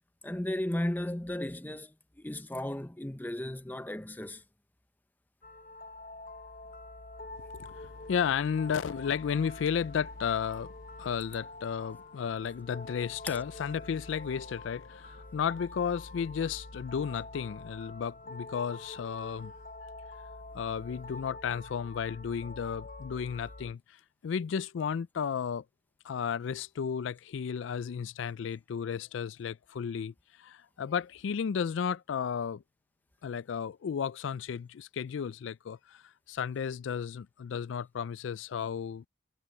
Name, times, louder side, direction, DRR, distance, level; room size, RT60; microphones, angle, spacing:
voice 1, 0.2-4.4 13.3-13.4, left 1 dB, 10° left, 0.6 m, -35 dB
sound 1, 5.4-23.7, left 2 dB, 45° left, 0.7 m, -46 dB
voice 2, 7.5-10.7 11.0-19.5 20.5-25.6 26.0-32.6 33.2-39.0, left 7 dB, 80° left, 0.4 m, -33 dB
head